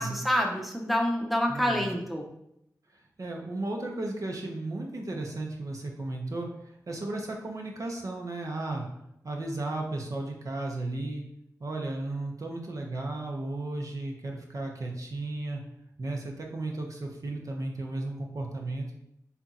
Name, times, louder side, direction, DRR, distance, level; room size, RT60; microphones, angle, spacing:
voice 1, 0.0-2.2, equal, ahead, 1 dB, 0.8 m, -27 dB
voice 2, 1.5-1.8 2.9-8.8 9.2-11.2 11.6-15.6 16.0-18.9, right 2 dB, 55° right, 1 dB, 0.8 m, -34 dB
6.8 x 2.9 x 2.4 m, 0.78 s
cardioid pair, 45°, 7 cm